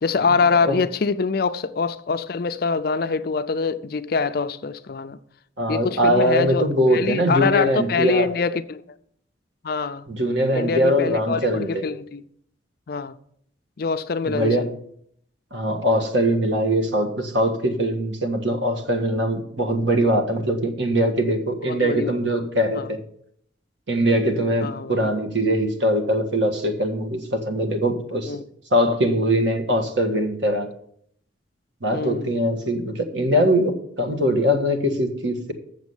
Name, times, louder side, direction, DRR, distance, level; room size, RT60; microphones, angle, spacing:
voice 1, 0.0-5.2 5.7-8.8 9.6-10.1 10.5-12.2 12.9-13.2 13.8-14.7 21.6-22.2 22.7-23.0 24.6-25.0 28.2-28.4 31.9-32.3, left 4 dB, 50° left, 0.4 m, -24 dB
voice 2, 5.6-8.3 10.1-11.9 14.3-14.7 15.5-23.0 23.9-28.4 28.7-30.7 31.8-35.5, equal, 70° right, 1.6 m, -22 dB
7.2 x 7.1 x 8.0 m
head